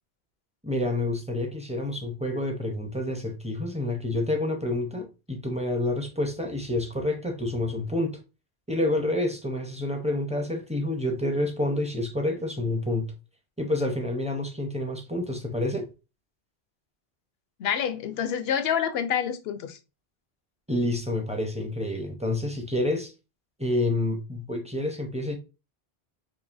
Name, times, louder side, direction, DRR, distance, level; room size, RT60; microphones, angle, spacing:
voice 1, 0.6-8.2 8.7-13.1 13.6-15.9 20.7-23.1 23.6-25.4, left 1 dB, 10° right, 0.5 m, -28 dB
voice 2, 17.6-19.8, left 8 dB, 75° left, 0.8 m, -27 dB
4.8 x 2.8 x 2.5 m
omnidirectional pair, 1.1 m